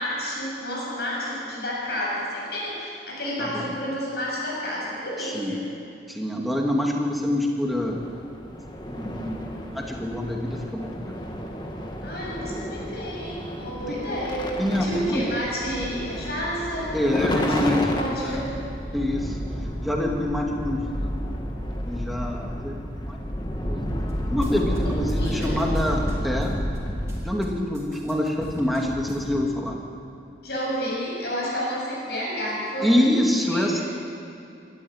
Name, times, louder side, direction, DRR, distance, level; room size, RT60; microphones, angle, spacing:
voice 1, 0.0-5.6 12.0-17.0 17.3-17.6 17.8-18.5 24.8-25.6 30.4-33.0 33.4-33.8, equal, 60° left, -4 dB, 7.4 m, -30 dB
voice 2, 3.4-3.8 5.2-5.7 6.1-8.0 8.9-9.4 9.7-11.2 13.9-14.0 14.6-15.3 16.9-18.5 18.9-19.4 19.8-21.3 21.9-23.8 24.3-26.6 27.2-29.8 32.8-33.8, left 1 dB, ahead, -1 dB, 2.3 m, -26 dB
sound 1, 7.7-27.5, equal, 25° left, 1.8 m, -31 dB
sound 2, 24.1-24.8 25.1-27.5 27.7-29.4, equal, 15° right, 3.8 m, -40 dB
26.0 x 13.0 x 9.0 m, 2.6 s
head